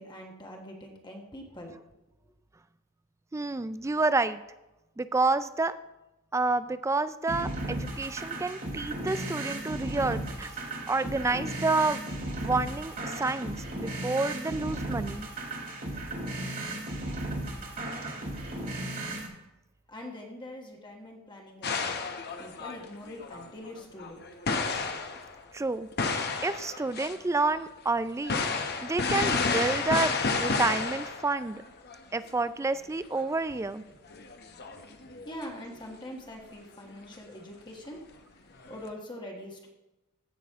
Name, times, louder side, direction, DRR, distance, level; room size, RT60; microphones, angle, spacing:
voice 1, 0.0-1.7 19.9-22.0 22.4-24.2 24.9-25.0 35.2-38.0 38.7-39.7, left 1 dB, 20° left, 0 dB, 1.3 m, -43 dB
voice 2, 3.3-4.4 5.0-5.7 6.3-10.5 10.9-12.0 12.4-15.3 25.5-25.9 26.4-28.4 28.8-31.6 32.1-33.8, right 3 dB, 15° right, 14 dB, 0.3 m, -29 dB
sound 1, 7.3-19.3, right 1 dB, 40° right, 2.5 m, -35 dB
sound 2, 21.6-25.4 25.9-27.2 27.4-27.5 28.2-31.6 31.8-32.0 32.3-32.4 33.1-33.2 33.5-33.8 34.1-35.4 37.1-37.2 38.6-38.8, left 4 dB, 50° left, 0.9 m, -31 dB
15.5 x 6.3 x 3.6 m, 0.97 s
head